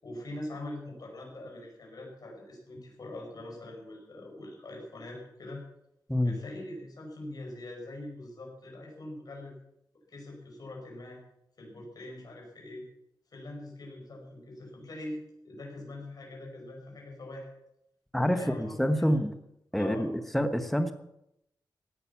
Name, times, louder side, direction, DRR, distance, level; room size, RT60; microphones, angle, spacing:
voice 1, 0.0-5.6 6.2-9.5 10.1-11.2 11.6-12.8 13.3-17.5 18.2-19.2 19.7-20.1, left 1 dB, 55° left, -1 dB, 5.6 m, -43 dB
voice 2, 18.1-19.3 19.7-20.9, equal, ahead, 8 dB, 1.2 m, -27 dB
16.5 x 9.4 x 7.0 m, 0.80 s
wide cardioid pair, 135°, 8 cm